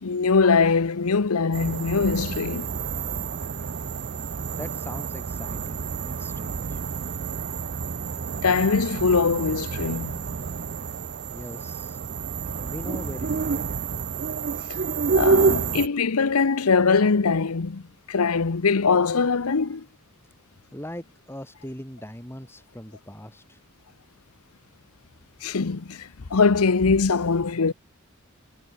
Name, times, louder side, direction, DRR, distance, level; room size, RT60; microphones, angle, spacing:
voice 1, 0.0-2.7 8.4-10.2 14.7-14.8 15.1-17.8 18.1-19.8 25.4-27.7, left 4 dB, 90° left, 0.8 m, -22 dB
sound 1, 1.5-15.9, right 5 dB, 45° right, 0.5 m, -28 dB
voice 2, 4.5-6.8 11.3-12.0 12.6-13.7 20.7-23.6, equal, 10° left, 5.6 m, -40 dB
head